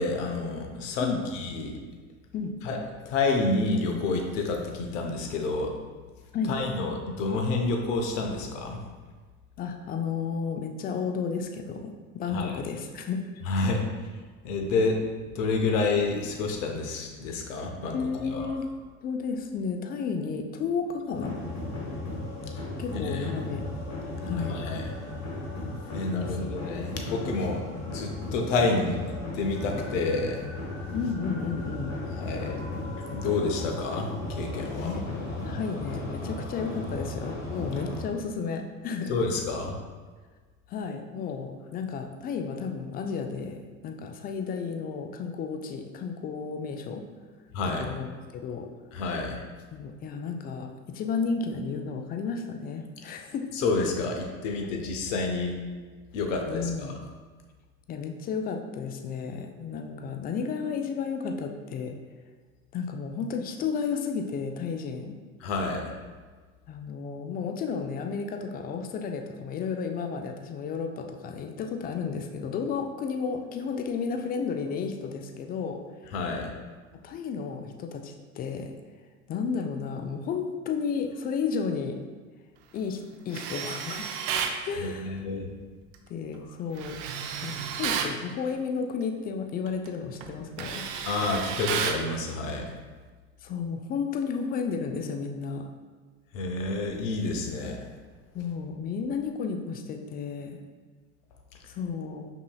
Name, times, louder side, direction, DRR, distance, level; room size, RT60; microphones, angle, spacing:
voice 1, 0.0-1.1 1.3-1.8 2.6-2.8 3.1-5.7 6.5-8.8 12.3-12.5 13.5-13.8 14.4-14.9 15.3-17.9 18.3-18.5 22.9-23.3 24.5-24.8 25.9-29.0 29.3-30.4 32.2-32.5 33.1-34.1 34.4-34.9 39.1-39.8 47.5-47.9 48.9-49.4 53.6-55.5 56.1-56.9 65.4-65.9 76.1-76.5 84.8-85.5 91.1-92.6 96.3-97.9, left 3 dB, 65° left, 2 dB, 0.7 m, -29 dB
voice 2, 9.6-13.2 17.9-18.7 19.0-21.4 22.8-23.6 24.2-24.6 26.1-26.4 30.9-32.0 34.8-35.0 35.4-39.2 40.7-47.1 47.6-48.7 49.7-53.5 56.5-57.0 57.9-62.0 62.7-65.2 66.7-75.8 77.0-78.7 79.3-82.0 82.7-83.0 83.3-84.1 84.6-85.2 86.1-87.0 87.4-90.8 93.4-95.7 98.3-100.6 101.7-102.3, left 5 dB, 25° left, 5 dB, 0.3 m, -32 dB
sound 1, 21.1-38.0, left 2 dB, 40° left, 1.1 m, -35 dB
Tools, 83.3-84.6 86.8-88.2 89.7-89.9 90.2-92.1, right 7 dB, 60° right, 0.5 m, -32 dB
5.3 x 2.8 x 2.3 m, 1.4 s
figure-of-eight pair, 70°, 41 cm